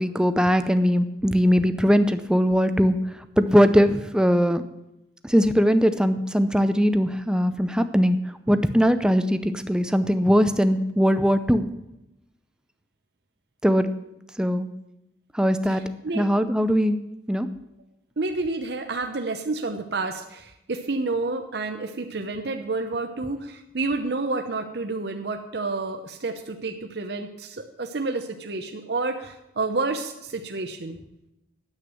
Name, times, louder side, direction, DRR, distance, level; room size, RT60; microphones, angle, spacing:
voice 1, 0.0-3.0 3.4-4.6 5.2-8.2 8.5-11.7 13.6-13.9 14.4-14.7 15.3-15.9 16.2-17.0 17.3-17.5, equal, 5° right, 10 dB, 0.6 m, -20 dB
voice 2, 15.7-16.3 18.2-31.0, right 3 dB, 65° right, 5 dB, 0.8 m, -29 dB
9.8 x 8.1 x 7.7 m, 0.88 s
head